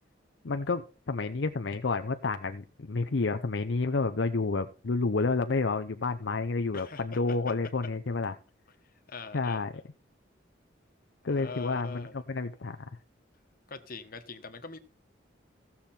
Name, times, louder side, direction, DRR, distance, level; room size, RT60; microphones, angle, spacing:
voice 1, 0.4-8.3 9.3-9.7 11.2-12.8, left 3 dB, 70° left, 0.7 m, -30 dB
voice 2, 6.7-7.5 9.1-9.7 11.3-12.2 13.7-14.8, left 4 dB, 50° left, 1.3 m, -43 dB
15.5 x 7.1 x 4.3 m
head